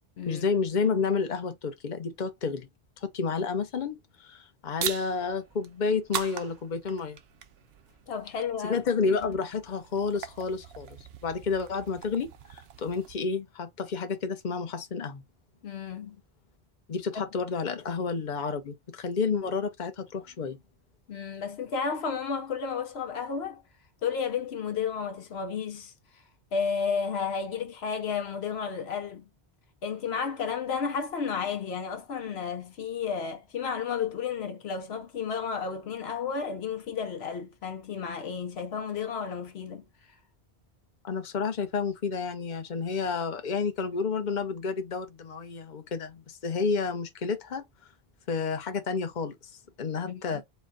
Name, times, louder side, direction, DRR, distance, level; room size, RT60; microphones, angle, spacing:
voice 1, 0.3-2.7 3.0-7.2 8.6-11.0 11.2-15.2 16.9-20.6 41.0-47.6 48.3-49.4 49.8-50.4, left 5 dB, 50° left, 0.9 m, -30 dB
sound 1, 4.8-13.1, right 9 dB, 75° right, 0.9 m, -41 dB
voice 2, 8.1-8.8 15.6-16.2 17.1-17.2 21.1-23.6 24.0-25.9 26.5-29.2 29.8-39.8 50.0-50.4, left 6 dB, 80° left, 1.0 m, -32 dB
4.4 x 2.2 x 3.7 m
omnidirectional pair, 1.0 m